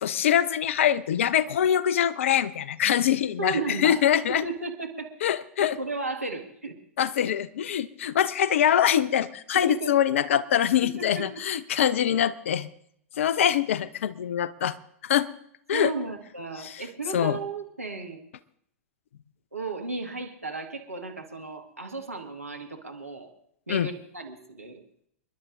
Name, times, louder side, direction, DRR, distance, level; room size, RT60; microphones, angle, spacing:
voice 1, 0.0-4.4 5.2-5.8 7.0-12.7 13.2-14.7 15.0-15.3 15.7-15.9 16.6-16.8 17.1-17.4 23.7-23.9, left 10 dB, 60° left, 18 dB, 0.6 m, -24 dB
voice 2, 3.4-5.1 5.8-6.8 9.5-9.9 10.8-11.5 15.7-18.2 19.5-23.3 23.7-24.8, right 3 dB, 90° right, 3 dB, 1.8 m, -34 dB
29.5 x 11.0 x 2.6 m, 0.71 s
figure-of-eight pair, 100°, 8 cm